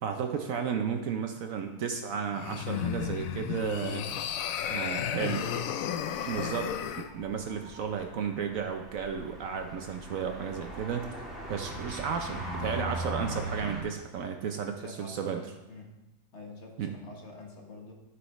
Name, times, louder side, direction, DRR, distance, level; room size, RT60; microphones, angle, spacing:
voice 1, 0.0-4.1 4.7-5.4 6.3-6.7 7.1-11.1 11.5-15.4 16.8-16.9, right 7 dB, 65° right, 5 dB, 1.0 m, -33 dB
sound 1, 2.3-7.1, left 9 dB, 70° left, 0.8 m, -33 dB
sound 2, 3.1-13.8, right 1 dB, ahead, 2.3 m, -41 dB
voice 2, 4.8-5.8 6.1-6.9 14.6-15.4 15.7-15.9 16.3-17.9, left 2 dB, 45° left, 0 dB, 1.4 m, -46 dB
12.5 x 6.3 x 3.1 m, 0.99 s
omnidirectional pair, 1.7 m